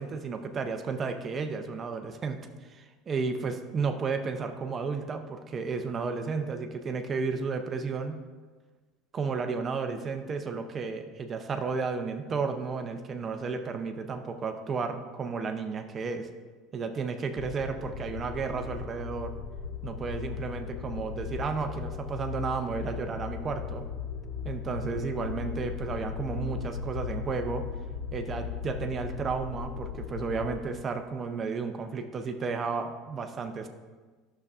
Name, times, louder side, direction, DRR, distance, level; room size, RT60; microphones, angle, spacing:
voice 1, 0.0-2.4 2.7-8.2 9.1-16.3 16.7-19.3 19.8-23.8 24.4-27.6 28.1-33.7, right 5 dB, 20° right, 6 dB, 0.5 m, -33 dB
sound 1, 17.4-30.6, left 7 dB, 50° left, 0.5 m, -37 dB
11.0 x 6.5 x 2.4 m, 1.4 s
cardioid pair, 175°, 0 cm